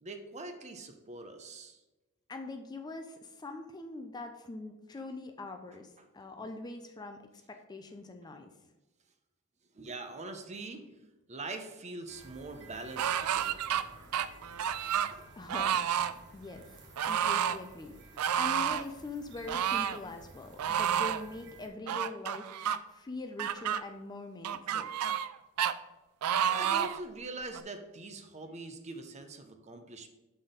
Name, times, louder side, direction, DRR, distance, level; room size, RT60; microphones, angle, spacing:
voice 1, 0.0-1.8 9.7-10.9 11.3-13.9 15.1-15.2 26.4-30.1, right 2 dB, 30° right, 7 dB, 0.6 m, -43 dB
voice 2, 2.3-7.2 7.5-8.5 15.3-16.6 17.0-22.5 22.9-24.9, left 3 dB, 20° left, 5 dB, 0.4 m, -43 dB
sound 1, 12.1-21.7, right 2 dB, 55° right, 1.1 m, -54 dB
sound 2, 13.0-13.8 14.1-15.1 15.5-16.1 17.0-17.6 18.2-18.8 19.5-20.0 20.6-21.2 21.9-22.8 23.4-23.8 24.4-25.3 25.6-25.7 26.2-27.0 27.5-27.6, right 9 dB, 80° right, 0.4 m, -30 dB
6.0 x 4.1 x 5.0 m, 1.1 s
head